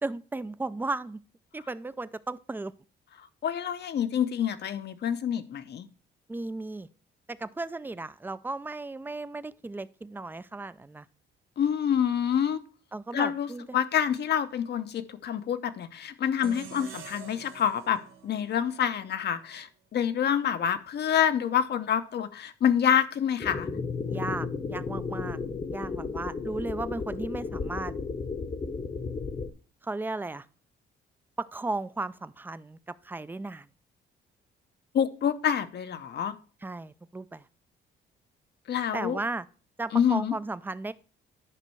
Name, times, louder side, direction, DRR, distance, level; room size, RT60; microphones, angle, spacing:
voice 1, 0.0-1.2 1.5-2.7 6.3-6.9 7.3-11.1 12.9-13.6 24.1-25.4 25.7-27.9 29.8-30.5 31.4-33.7 36.6-37.4 38.9-39.5 39.8-40.9, right 2 dB, 10° right, 15 dB, 0.4 m, -35 dB
voice 2, 3.4-5.9 11.6-12.6 13.1-13.5 13.7-23.7 34.9-36.3 38.7-39.2 39.9-40.3, left 9 dB, 55° left, 11 dB, 0.8 m, -27 dB
sound 1, 16.4-19.6, right 7 dB, 85° right, 1.2 m, -47 dB
sound 2, 23.4-29.5, left 4 dB, 30° left, 0.9 m, -33 dB
10.0 x 5.3 x 4.6 m, 0.38 s
cardioid pair, 90°, 20 cm